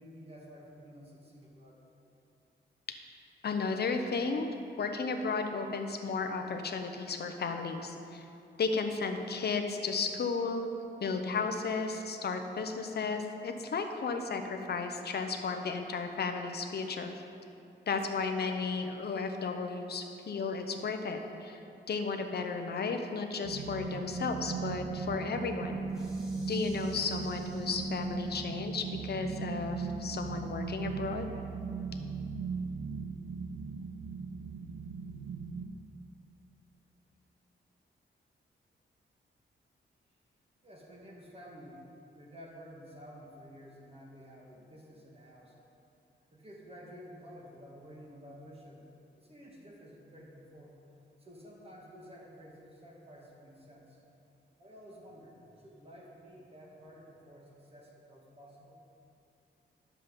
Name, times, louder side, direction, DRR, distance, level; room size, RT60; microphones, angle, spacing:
voice 1, 0.0-1.8 40.6-45.6 46.3-48.9 49.2-50.7 51.2-54.0 54.6-58.8, equal, 30° right, -3 dB, 1.9 m, -52 dB
voice 2, 3.4-4.5 4.8-8.2 8.6-10.7 11.0-17.1 17.9-21.6 21.9-25.9 26.5-31.3, left 4 dB, 55° left, 5 dB, 0.9 m, -34 dB
sound 1, 23.4-35.6, right 4 dB, 75° right, 0.7 m, -38 dB
sound 2, 25.9-28.5, equal, ahead, 2.7 m, -57 dB
11.0 x 7.3 x 5.4 m, 2.8 s
wide cardioid pair, 125°, 20 cm